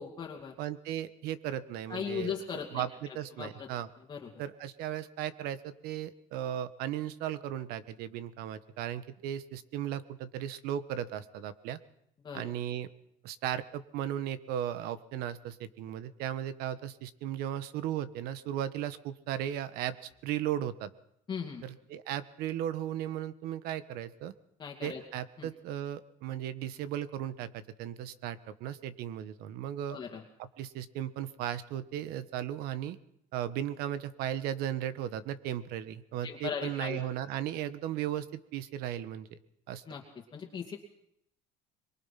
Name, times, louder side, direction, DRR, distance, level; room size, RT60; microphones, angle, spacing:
voice 1, 0.0-0.5 1.9-2.8 3.4-3.7 4.1-4.3 12.2-12.5 21.3-21.6 24.6-25.0 25.4-25.5 29.9-30.2 36.2-37.0 39.9-40.0 40.3-40.8, left 6 dB, 25° left, 0 dB, 2.4 m, -38 dB
voice 2, 0.6-3.9 4.4-11.8 12.3-12.9 13.2-20.9 21.6-24.3 24.8-30.0 30.4-33.0 33.3-39.4 39.7-39.8, right 11 dB, 70° right, 13 dB, 1.4 m, -36 dB
23.5 x 23.0 x 5.9 m, 0.75 s
cardioid pair, 145°, 16 cm